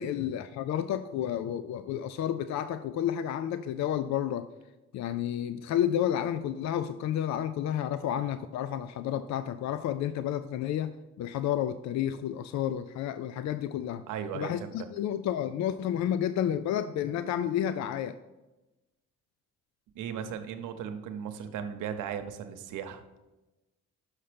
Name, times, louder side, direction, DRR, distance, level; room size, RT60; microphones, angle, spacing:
voice 1, 0.0-4.5 4.9-10.9 11.2-14.0 14.3-18.2, left 10 dB, 65° left, 12 dB, 0.4 m, -31 dB
voice 2, 14.1-14.7 19.9-23.0, right 8 dB, 90° right, 7 dB, 0.8 m, -36 dB
6.6 x 5.7 x 5.1 m, 1.0 s
cardioid pair, 90°, 30 cm